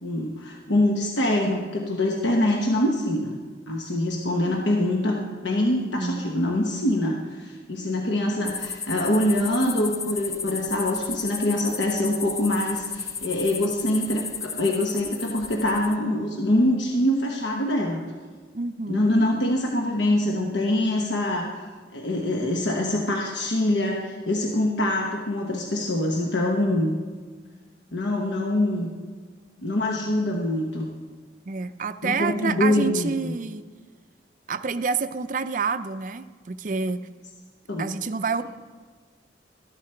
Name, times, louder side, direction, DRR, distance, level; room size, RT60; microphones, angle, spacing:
voice 1, 0.0-3.4 3.7-18.0 18.9-21.5 21.9-26.9 27.9-28.9 29.6-30.9 32.0-33.3 37.7-37.9, left 1 dB, 85° left, 0 dB, 1.1 m, -24 dB
voice 2, 5.7-6.2 18.5-19.0 31.5-33.6 34.5-37.1 37.8-38.4, right 4 dB, 45° right, 11 dB, 0.4 m, -28 dB
sound 1, 8.4-15.9, left 6 dB, 15° left, 0.3 m, -34 dB
13.5 x 11.0 x 4.4 m, 1.5 s
head